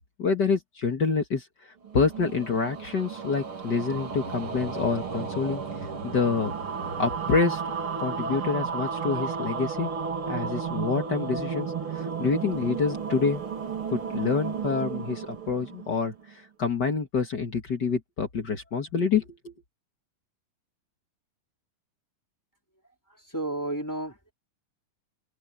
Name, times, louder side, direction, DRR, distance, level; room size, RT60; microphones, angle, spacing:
voice 1, 0.2-1.4 1.9-5.6 6.0-6.5 7.0-7.6 8.0-9.9 10.3-13.4 13.9-16.1 16.6-19.5, left 5 dB, 40° left, 1.7 m, -27 dB
sound 1, 1.8-16.3, right 6 dB, 40° right, 3.4 m, -33 dB
voice 2, 23.3-24.3, right 1 dB, 5° left, 2.9 m, -31 dB
open air
omnidirectional pair, 3.8 m